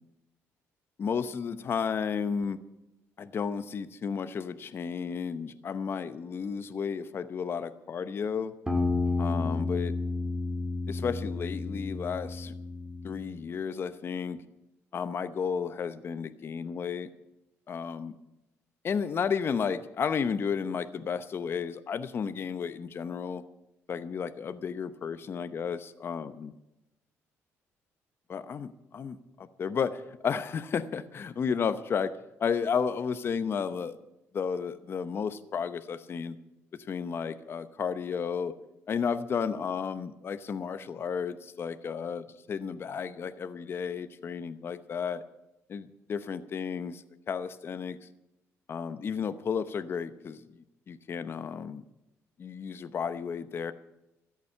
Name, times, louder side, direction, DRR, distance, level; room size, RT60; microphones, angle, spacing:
voice 1, 1.0-2.6 3.2-8.5 9.2-10.0 10.9-12.5 13.0-14.4 14.9-17.1 17.7-18.1 18.8-23.4 23.9-26.5 28.3-32.1 32.4-34.0 34.3-36.4 36.9-38.5 38.9-45.2 45.7-48.0 48.7-51.8 52.4-53.7, left 6 dB, 45° left, 12 dB, 0.8 m, -33 dB
sound 1, 8.7-13.3, left 3 dB, 10° right, 2.5 m, -31 dB
13.5 x 8.3 x 8.6 m, 0.92 s
cardioid pair, 105°, 6 cm